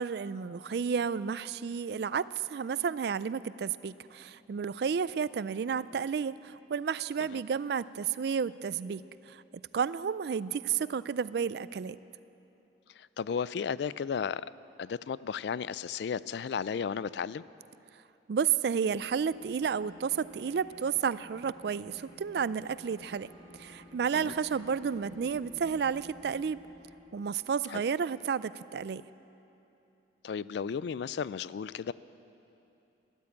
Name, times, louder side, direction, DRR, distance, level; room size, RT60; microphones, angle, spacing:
voice 1, 0.0-9.0 9.3-9.4 9.7-12.0 18.3-23.3 23.5-26.6 27.1-29.0, right 6 dB, 60° right, 17 dB, 0.3 m, -31 dB
voice 2, 13.0-14.5 14.8-17.4 24.1-24.3 27.7-27.8 30.2-31.9, left 6 dB, 70° left, 18 dB, 0.3 m, -34 dB
sound 1, 18.8-28.8, left 1 dB, 30° left, 2.2 m, -54 dB
13.0 x 12.5 x 8.4 m, 2.9 s
head